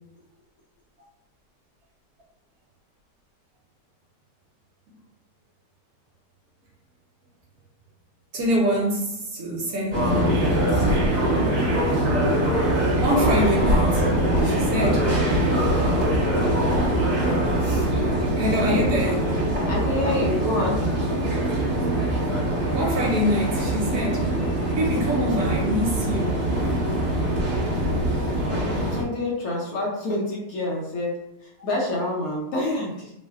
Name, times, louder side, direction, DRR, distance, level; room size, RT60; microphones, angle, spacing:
voice 1, 8.3-11.4 13.0-14.1 14.4-15.1 18.4-19.4 22.5-24.3 24.8-26.4, equal, 65° right, -2 dB, 1.1 m, -25 dB
sound 1, 9.9-29.0, right 1 dB, 30° right, 1.0 m, -23 dB
voice 2, 19.7-20.9 28.5-33.1, left 1 dB, 65° left, -2 dB, 1.1 m, -27 dB
3.1 x 2.1 x 3.5 m, 0.82 s
omnidirectional pair, 1.8 m